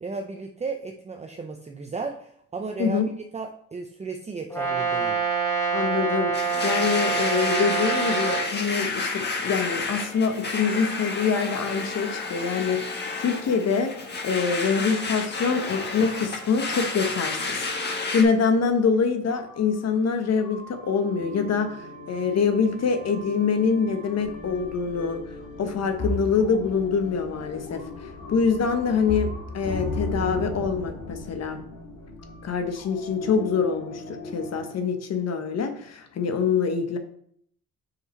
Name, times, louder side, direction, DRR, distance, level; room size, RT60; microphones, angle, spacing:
voice 1, 0.0-3.0 3.3-5.3, right 4 dB, 20° right, 3 dB, 0.6 m, -34 dB
Brass instrument, 4.5-8.5, right 5 dB, 10° left, 1.9 m, -26 dB
voice 2, 5.7-6.3 6.6-13.9 14.2-21.8 22.1-25.2 25.6-31.6 32.4-37.0, left 5 dB, 60° left, 7 dB, 1.1 m, -25 dB
Domestic sounds home sounds, 6.3-18.2, left 3 dB, 35° left, 1.4 m, -31 dB
sound 1, 16.2-16.9 17.2-17.3 18.1-18.2 19.3-34.7, left 1 dB, 90° left, 2.5 m, -37 dB
5.7 x 5.5 x 4.4 m, 0.66 s
cardioid pair, 90°, 30 cm